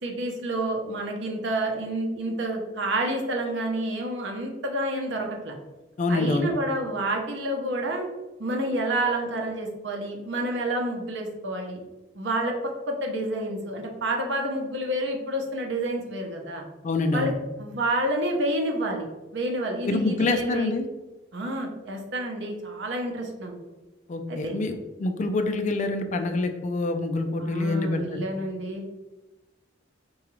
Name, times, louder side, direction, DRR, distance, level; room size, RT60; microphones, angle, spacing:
voice 1, 0.0-5.6 6.1-8.1 8.4-11.8 12.1-12.5 12.9-16.6 17.1-17.3 17.6-20.7 21.3-23.5 24.3-24.6 27.4-29.0, right 1 dB, 75° right, 2 dB, 0.7 m, -29 dB
voice 2, 6.0-6.5 16.8-17.3 19.8-20.9 24.1-28.2, left 2 dB, 40° left, 6 dB, 0.4 m, -26 dB
4.8 x 2.3 x 3.0 m, 1.1 s
head